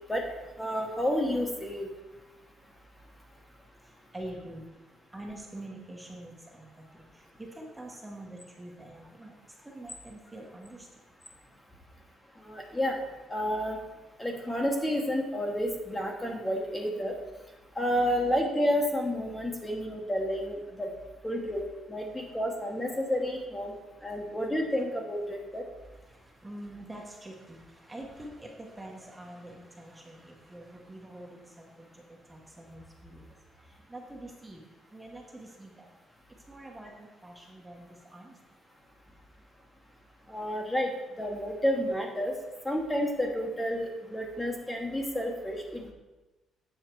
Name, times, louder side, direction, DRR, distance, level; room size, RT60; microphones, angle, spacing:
voice 1, 0.6-1.9 12.5-13.0 13.3-13.8 14.2-17.1 17.8-20.9 21.2-21.6 21.9-23.7 24.0-25.6 40.3-40.9 41.2-42.3 42.6-45.9, equal, 10° left, 1 dB, 1.0 m, -30 dB
voice 2, 3.8-11.0 24.3-24.4 25.9-34.6 34.9-36.0 36.3-38.4, right 1 dB, 10° right, -1 dB, 0.9 m, -46 dB
8.1 x 6.3 x 4.5 m, 1.1 s
cardioid pair, 165°, 0 cm